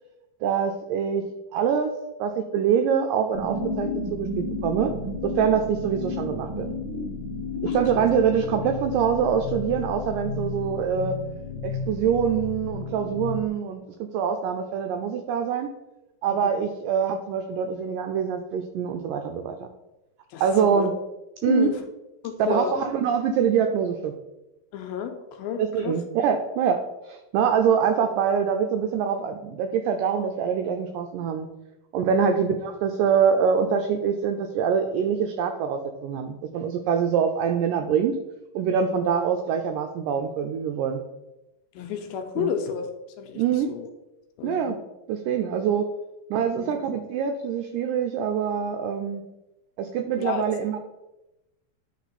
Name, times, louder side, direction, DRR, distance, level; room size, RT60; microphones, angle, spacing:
voice 1, 0.4-1.2 1.5-4.9 5.2-6.7 7.6-11.2 11.6-15.7 16.2-19.7 20.4-20.9 21.4-21.7 22.4-24.1 25.6-31.5 31.9-38.2 38.6-41.0 42.4-42.5 43.3-43.7 44.4-44.8 45.1-45.9 46.3-49.2 49.8-50.8, right 7 dB, 90° right, 6 dB, 1.9 m, -24 dB
sound 1, 3.3-13.5, left 3 dB, 40° right, 0.7 m, -32 dB
voice 2, 7.7-8.1 16.3-16.6 20.3-20.9 21.4-21.7 22.2-22.9 24.7-26.0 32.1-32.4 41.7-42.9 43.2-43.9 44.4-44.8 46.5-46.8 50.2-50.4, left 7 dB, 80° left, 5 dB, 2.4 m, -32 dB
10.5 x 3.8 x 4.2 m, 0.98 s
omnidirectional pair, 4.5 m